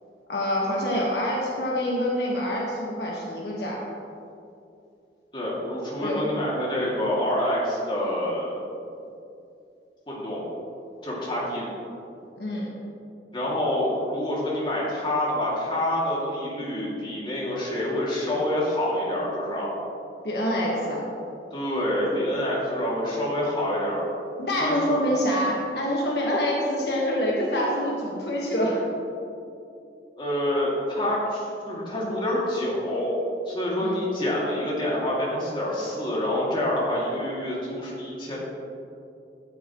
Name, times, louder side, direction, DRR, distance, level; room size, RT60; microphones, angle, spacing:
voice 1, 0.3-3.8 6.0-6.3 12.4-12.7 20.2-21.0 24.4-28.9 33.8-34.0, equal, 70° left, -3 dB, 1.5 m, -26 dB
voice 2, 5.3-8.6 10.1-10.4 11.0-11.7 13.3-19.7 21.5-24.0 24.6-25.0 30.2-33.1 33.5-38.4, left 1 dB, 25° left, -6 dB, 2.4 m, -27 dB
13.5 x 8.5 x 3.1 m, 2.6 s
head